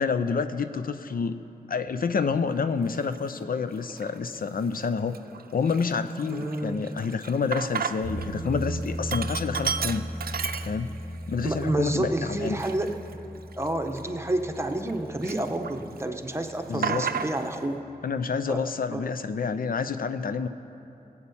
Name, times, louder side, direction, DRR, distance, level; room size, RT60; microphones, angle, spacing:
voice 1, 0.0-1.4 1.7-5.2 5.5-10.1 10.6-10.9 11.3-12.6 16.7-17.1 18.0-20.5, left 5 dB, 65° left, 10 dB, 0.5 m, -28 dB
Sink (filling or washing), 3.0-3.2 3.8-4.4 4.8-4.9 5.1-8.3 8.6-11.1 11.6-11.7 12.4-14.9 15.2-16.0 16.3-17.6, right 7 dB, 70° right, 0.5 m, -33 dB
voice 2, 6.3-6.8 11.4-13.0 13.6-17.8 18.5-18.6 18.9-19.0, right 1 dB, 15° right, 4 dB, 1.2 m, -29 dB
sound 1, 8.0-17.0, equal, 85° left, 4.1 m, -37 dB
16.0 x 8.5 x 7.1 m, 2.9 s
cardioid pair, 50°, 16 cm